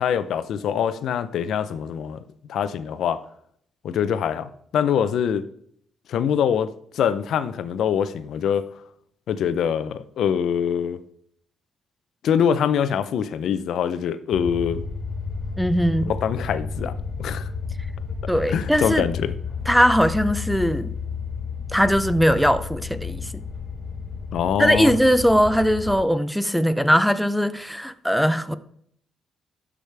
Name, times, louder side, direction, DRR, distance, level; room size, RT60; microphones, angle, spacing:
voice 1, 0.0-2.2 2.5-3.2 3.8-5.4 6.1-6.7 6.9-8.6 9.3-11.0 12.2-14.8 16.1-16.9 17.2-17.5 18.5-19.3 24.3-25.0, left 8 dB, 70° left, 13 dB, 0.5 m, -24 dB
sound 1, 14.3-26.0, left 5 dB, 45° left, 1.7 m, -32 dB
voice 2, 15.6-16.2 18.3-19.1 19.7-20.9 21.7-23.3 24.6-28.5, equal, ahead, 12 dB, 0.5 m, -20 dB
12.0 x 5.0 x 3.4 m, 0.68 s
cardioid pair, 90°, 0 cm